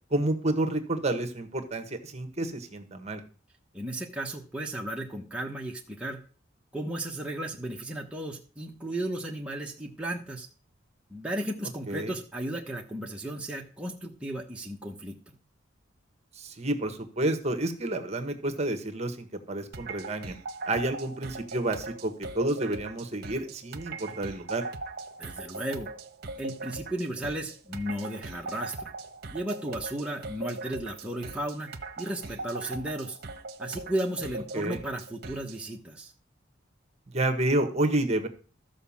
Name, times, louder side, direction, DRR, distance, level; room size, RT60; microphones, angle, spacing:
voice 1, 0.1-3.2 11.9-12.1 16.3-20.3 20.7-24.6 34.5-34.8 37.1-38.3, right 1 dB, 35° right, 8 dB, 1.4 m, -29 dB
voice 2, 3.7-6.2 6.7-10.5 11.1-15.3 25.2-25.9 26.4-28.9 29.3-31.7 32.0-33.2 33.6-36.1, right 1 dB, 5° right, -1 dB, 1.2 m, -34 dB
sound 1, 19.7-35.6, right 3 dB, 55° right, 1.2 m, -40 dB
13.5 x 5.1 x 7.3 m, 0.38 s
head